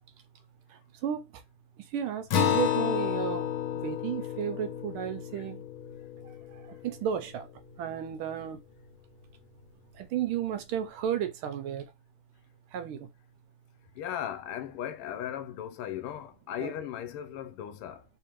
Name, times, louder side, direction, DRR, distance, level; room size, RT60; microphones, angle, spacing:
voice 1, 1.8-3.5 3.7-5.6 6.5-7.5 7.8-8.6 10.0-11.9 12.7-13.1 16.6-16.7, right 9 dB, 80° right, 1.5 m, -33 dB
Acoustic guitar, 2.3-7.2, left 11 dB, 75° left, 1.5 m, -31 dB
voice 2, 13.9-18.0, left 10 dB, 90° left, 1.6 m, -37 dB
3.6 x 3.5 x 3.0 m
omnidirectional pair, 2.4 m